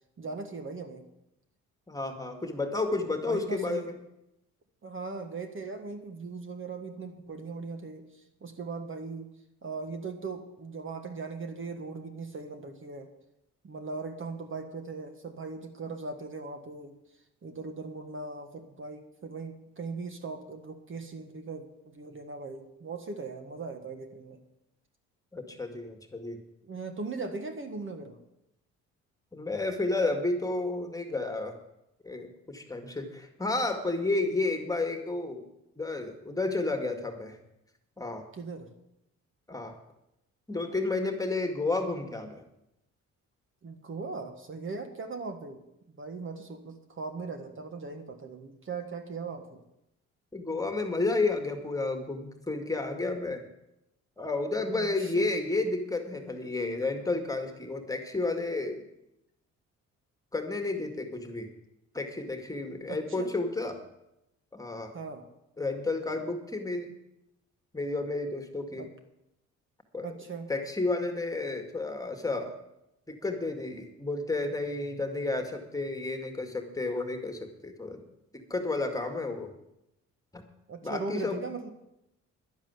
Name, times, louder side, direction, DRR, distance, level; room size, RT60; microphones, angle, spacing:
voice 1, 0.2-1.0 3.2-3.9 4.8-8.0 8.4-9.3 9.6-13.1 13.6-16.9 17.4-24.4 26.6-28.2 38.3-38.7 43.6-45.6 46.0-49.6 54.6-55.3 62.9-63.3 64.9-65.3 68.8-68.9 70.0-70.5 80.7-81.7, right 4 dB, 40° right, 6 dB, 1.6 m, -39 dB
voice 2, 1.9-3.9 25.3-26.4 29.3-31.6 32.0-35.4 35.8-37.4 38.0-38.3 39.5-39.8 40.5-42.4 50.3-53.4 54.2-58.8 60.3-61.5 61.9-63.8 64.5-64.9 65.6-66.9 67.7-68.8 69.9-70.1 70.5-72.6 73.1-78.0 78.5-79.5 80.3-80.4 80.8-81.4, left 3 dB, 10° left, 5 dB, 1.9 m, -31 dB
11.0 x 7.3 x 9.5 m, 0.85 s
cardioid pair, 90°, 30 cm